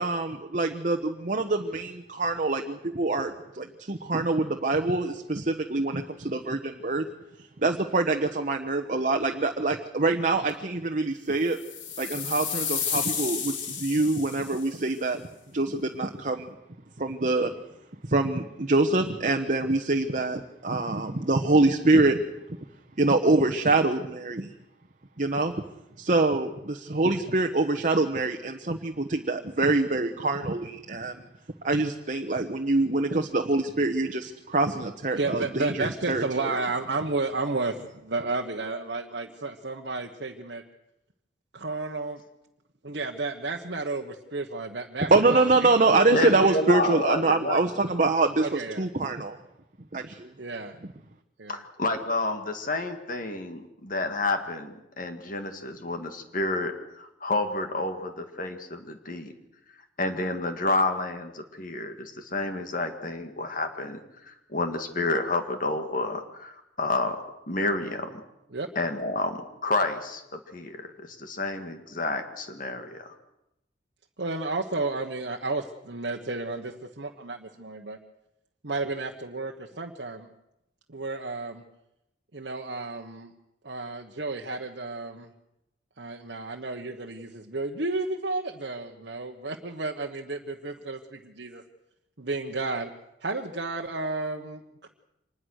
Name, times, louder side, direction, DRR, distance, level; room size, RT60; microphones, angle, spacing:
voice 1, 0.0-7.1 7.6-11.6 12.0-15.2 15.5-16.5 17.0-17.5 18.0-22.2 23.0-24.5 25.2-25.5 26.0-31.3 31.6-36.6 45.1-49.4 49.9-50.3, right 2 dB, 45° right, 5 dB, 1.2 m, -25 dB
sound 1, 11.5-14.7, left 7 dB, 85° left, 3.6 m, -32 dB
voice 2, 35.1-40.6 41.5-42.2 42.8-45.5 45.9-46.6 48.4-48.8 50.4-50.7 51.4-51.6 68.5-68.7 74.2-78.0 78.6-80.3 80.9-81.6 82.3-83.3 83.6-85.3 86.0-91.6 92.2-92.9 93.2-94.9, right 3 dB, 65° right, 2 dB, 1.3 m, -32 dB
voice 3, 46.1-47.6 51.5-59.3 60.0-67.2 67.5-68.2 68.8-70.8 71.1-73.1, left 2 dB, 45° left, 6 dB, 2.0 m, -29 dB
25.5 x 20.5 x 6.5 m, 0.87 s
head